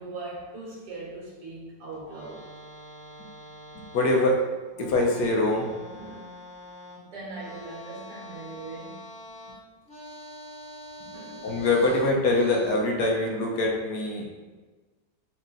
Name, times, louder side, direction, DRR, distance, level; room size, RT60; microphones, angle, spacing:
voice 1, 0.0-2.5 5.9-6.3 6.9-9.0 11.1-11.5, right 3 dB, 80° right, 1.7 m, -40 dB
sound 1, 1.9-4.4 4.7-12.7, left 1 dB, 45° left, 1.2 m, -45 dB
voice 2, 3.9-4.5 4.8-5.8 11.4-14.6, left 2 dB, 80° left, 1.3 m, -24 dB
4.4 x 2.8 x 3.7 m
omnidirectional pair, 1.8 m